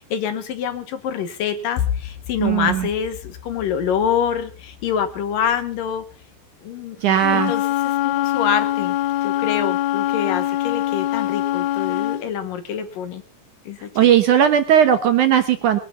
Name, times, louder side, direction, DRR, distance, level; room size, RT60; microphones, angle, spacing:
voice 1, 0.0-6.0 6.6-9.0 9.2-13.2 13.7-14.1, left 8 dB, 70° left, 10 dB, 2.7 m, -26 dB
voice 2, 2.4-2.9 7.0-7.5 14.0-15.8, right 9 dB, 70° right, 8 dB, 2.1 m, -17 dB
Wind instrument woodwind instrument, 7.2-12.2, left 13 dB, 90° left, 2.9 m, -23 dB
21.0 x 11.0 x 5.5 m, 0.39 s
omnidirectional pair, 4.5 m